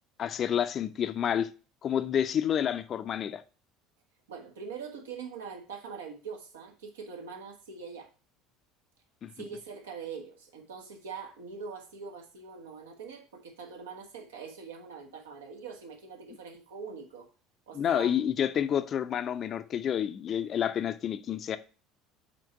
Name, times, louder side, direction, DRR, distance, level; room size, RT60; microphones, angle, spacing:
voice 1, 0.2-1.5 1.8-3.4 9.2-9.3 17.7-21.6, left 9 dB, 40° left, 0.6 m, -29 dB
voice 2, 4.3-8.1 9.3-17.3 17.7-18.2, right 5 dB, 70° right, 1.3 m, -43 dB
5.9 x 4.5 x 4.5 m
figure-of-eight pair, 65°, 0 cm